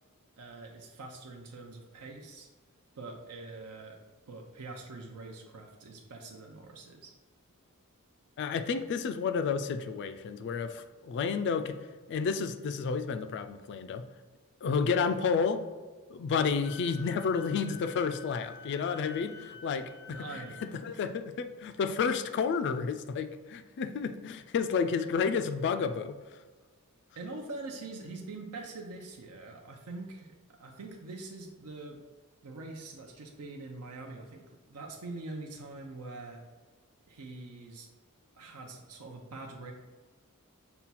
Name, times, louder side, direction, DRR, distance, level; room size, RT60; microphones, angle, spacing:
voice 1, 0.4-2.5 2.9-4.0 4.3-7.1 20.1-20.8 27.2-30.3 30.6-32.0 32.4-36.4 37.1-37.9 38.3-39.7, right 3 dB, 80° right, 1 dB, 0.6 m, -44 dB
voice 2, 8.4-11.8 12.1-14.1 14.6-15.7 16.1-20.3 20.6-26.2, left 5 dB, 50° left, 9 dB, 0.3 m, -31 dB
Wind instrument woodwind instrument, 16.6-20.7, left 6 dB, 80° left, 0.8 m, -48 dB
5.7 x 2.3 x 4.0 m, 1.3 s
head